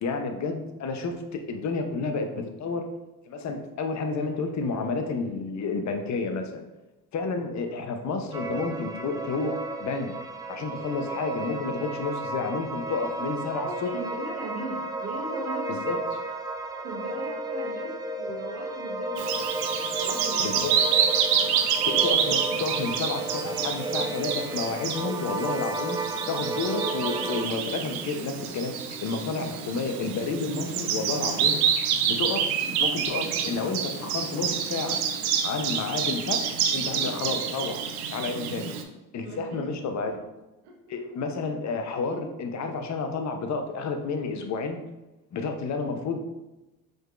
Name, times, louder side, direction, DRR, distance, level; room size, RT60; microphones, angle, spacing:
voice 1, 0.0-1.2 1.5-2.9 3.3-6.6 7.1-10.1 10.5-13.9 15.7-16.0 20.4-20.7 21.8-28.7 29.0-31.6 32.0-35.0 35.4-37.8 38.1-38.7 39.1-40.3 40.9-44.8 45.3-46.2, left 4 dB, 40° left, 5 dB, 0.8 m, -30 dB
sound 1, 8.3-27.5, right 2 dB, 10° right, 0.3 m, -33 dB
voice 2, 12.9-15.8 16.8-20.9 21.3-21.6 39.2-39.7 40.0-40.1 40.6-40.7, right 2 dB, 75° right, -1 dB, 1.2 m, -39 dB
Bird vocalization bird call bird song, 19.2-38.8, right 7 dB, 60° right, 0.7 m, -28 dB
5.1 x 3.8 x 2.5 m, 1.0 s
hypercardioid pair, 60°, 44 cm